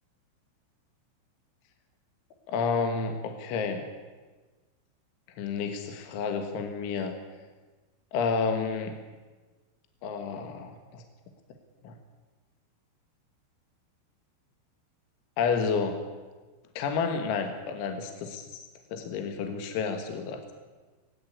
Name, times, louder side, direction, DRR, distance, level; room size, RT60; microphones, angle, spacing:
voice 1, 2.5-3.9 5.4-7.1 8.1-9.0 10.0-11.0 11.8-12.0 15.4-16.1 16.8-20.4, left 5 dB, 70° left, 6 dB, 3.7 m, -30 dB
19.5 x 17.0 x 9.7 m, 1.3 s
omnidirectional pair, 6.0 m